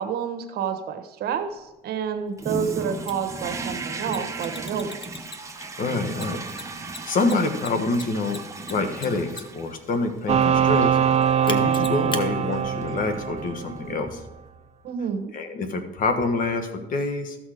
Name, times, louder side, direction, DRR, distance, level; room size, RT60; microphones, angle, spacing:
voice 1, 0.0-5.2 14.8-15.3, right 7 dB, 70° right, 8 dB, 1.2 m, -29 dB
Toilet flush, 2.4-14.7, right 3 dB, 20° right, 1.0 m, -37 dB
Mechanisms, 3.1-3.2 4.1-5.6 6.1-9.7 11.5-12.2, left 3 dB, 30° left, 1.0 m, -36 dB
voice 2, 5.6-6.7 7.1-8.4 8.7-11.0 11.5-14.2 15.3-17.4, left 3 dB, 55° left, 7 dB, 1.4 m, -26 dB
sound 1, 10.3-14.0, right 8 dB, 40° right, 0.6 m, -22 dB
13.5 x 6.3 x 5.0 m, 0.98 s
cardioid pair, 110°, 17 cm